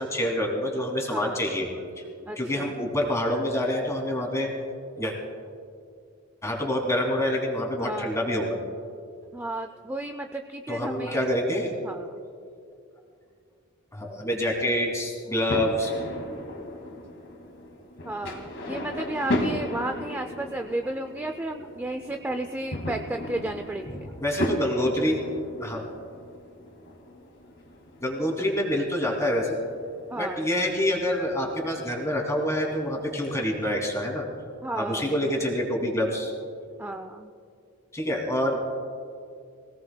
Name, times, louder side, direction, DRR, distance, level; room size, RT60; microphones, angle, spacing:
voice 1, 0.0-1.7 2.0-2.1 2.4-4.5 5.0-5.1 6.4-8.6 8.8-8.9 10.7-11.8 13.9-15.9 24.2-25.2 25.6-25.8 28.0-29.6 30.1-34.3 34.8-36.3 37.9-38.6, left 1 dB, 15° left, 0 dB, 2.5 m, -27 dB
voice 2, 1.1-1.4 2.3-2.7 7.8-8.2 9.3-11.2 11.8-12.2 18.0-24.1 30.1-30.5 34.6-35.5 36.8-37.3, right 1 dB, 10° right, 6 dB, 0.3 m, -33 dB
sound 1, 15.5-33.3, left 1 dB, 55° left, 2.1 m, -36 dB
24.0 x 17.5 x 2.2 m, 2.3 s
head